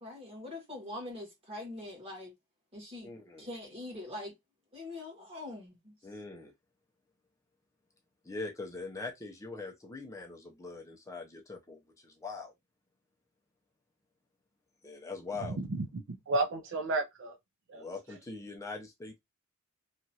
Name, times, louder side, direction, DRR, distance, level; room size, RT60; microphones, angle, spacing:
voice 1, 0.0-2.3 2.7-3.1 3.4-4.3 4.7-5.9, left 2 dB, 30° right, 1.4 m, -43 dB
voice 2, 3.0-3.5 6.0-6.5 8.2-12.5 14.8-15.6 17.7-19.2, left 3 dB, 15° left, 0.5 m, -42 dB
voice 3, 15.4-17.4 17.7-17.8, right 2 dB, 60° right, 0.5 m, -32 dB
2.9 x 2.4 x 2.7 m
head